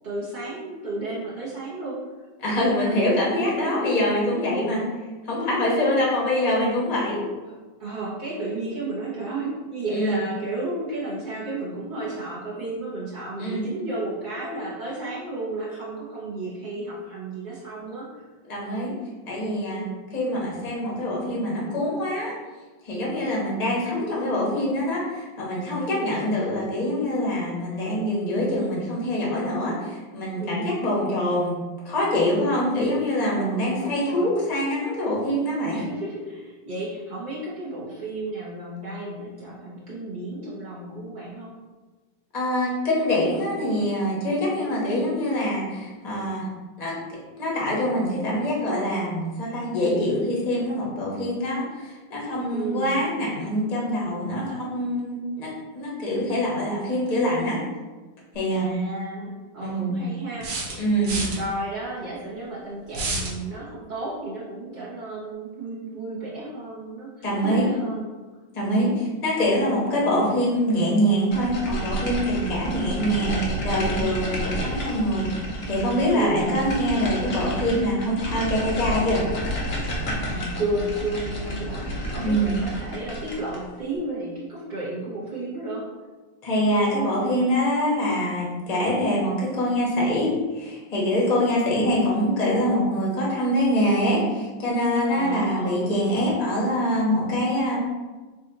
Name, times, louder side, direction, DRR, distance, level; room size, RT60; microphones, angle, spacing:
voice 1, 0.0-2.0 2.8-3.0 3.4-3.9 7.5-7.6 7.8-18.2 19.7-20.0 30.4-30.8 33.2-34.3 35.7-41.5 52.5-53.1 58.5-60.5 61.1-68.1 76.1-76.7 80.3-85.8 95.1-95.8, right 2 dB, 45° right, -7 dB, 0.6 m, -32 dB
voice 2, 2.4-4.8 5.2-7.2 9.9-10.2 13.4-13.6 18.5-18.9 19.3-19.8 20.1-22.3 22.8-31.6 31.8-35.8 42.3-46.5 46.8-46.9 47.4-57.6 58.3-58.7 59.6-60.0 60.8-61.1 67.2-67.7 68.5-75.3 75.7-79.4 82.2-82.5 86.4-97.8, equal, 30° left, -5 dB, 0.8 m, -24 dB
sound 1, 58.3-58.4 60.4-61.4 62.9-63.4, right 2 dB, 65° right, 1.4 m, -29 dB
sound 2, 71.3-83.7, equal, 65° left, 0.6 m, -30 dB
4.0 x 2.5 x 3.9 m, 1.3 s
omnidirectional pair, 2.2 m